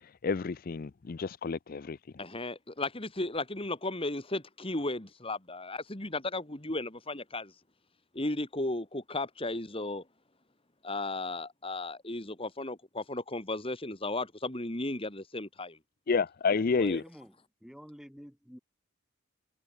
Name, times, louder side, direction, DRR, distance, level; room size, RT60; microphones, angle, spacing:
voice 1, 0.2-2.0 16.1-17.0, left 4 dB, 40° left, 0.4 m, -29 dB
voice 2, 2.2-7.5 8.1-10.0 10.8-15.8 16.8-17.0, left 2 dB, 25° left, 2.3 m, -35 dB
voice 3, 16.5-18.6, equal, ahead, 4.7 m, -50 dB
head